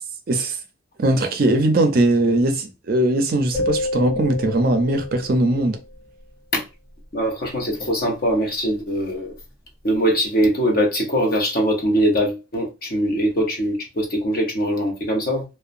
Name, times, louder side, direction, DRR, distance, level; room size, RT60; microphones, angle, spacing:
voice 1, 0.3-0.6 1.0-5.8, right 1 dB, 45° right, 0.4 m, -20 dB
sound 1, 3.5-5.8, left 2 dB, 20° left, 1.4 m, -28 dB
voice 2, 7.1-9.3 9.8-15.4, equal, 45° left, 0.7 m, -22 dB
2.8 x 2.1 x 2.4 m
head